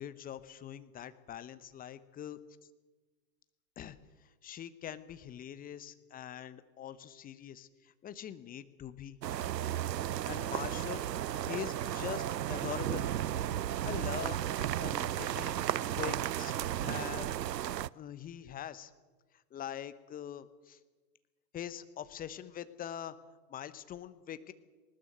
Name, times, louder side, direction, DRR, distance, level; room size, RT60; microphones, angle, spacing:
voice 1, 0.0-2.4 3.8-9.2 10.2-11.0 11.5-12.2 12.5-13.1 13.8-16.5 16.8-17.3 17.9-18.9 19.5-20.8 21.5-23.2 23.5-24.5, left 10 dB, 15° left, 13 dB, 1.0 m, -43 dB
sound 1, 9.2-17.9, right 11 dB, 75° right, 0.6 m, -34 dB
20.0 x 19.5 x 7.7 m, 1.3 s
figure-of-eight pair, 110°, 49 cm